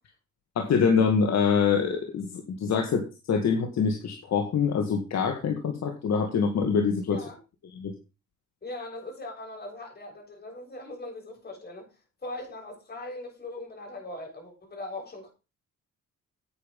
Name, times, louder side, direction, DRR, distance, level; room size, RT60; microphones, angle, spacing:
voice 1, 0.6-7.2 7.8-7.9, left 6 dB, 60° left, 2.1 m, -25 dB
voice 2, 8.6-11.9 12.2-15.3, left 2 dB, 30° left, 7.2 m, -40 dB
9.4 x 9.4 x 5.5 m
cardioid pair, 90°, 30 cm